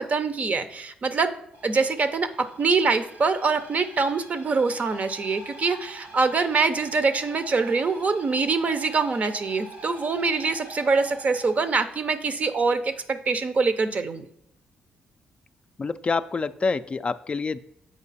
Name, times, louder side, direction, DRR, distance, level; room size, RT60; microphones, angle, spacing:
voice 1, 0.0-1.3 1.6-2.3 2.6-14.3, right 4 dB, 45° right, 11 dB, 0.7 m, -24 dB
sound 1, 1.5-12.3, right 2 dB, 85° right, 2.0 m, -46 dB
voice 2, 15.8-17.6, left 4 dB, 35° left, 11 dB, 0.3 m, -27 dB
7.3 x 4.9 x 4.1 m, 0.74 s
cardioid pair, 70°, 3 cm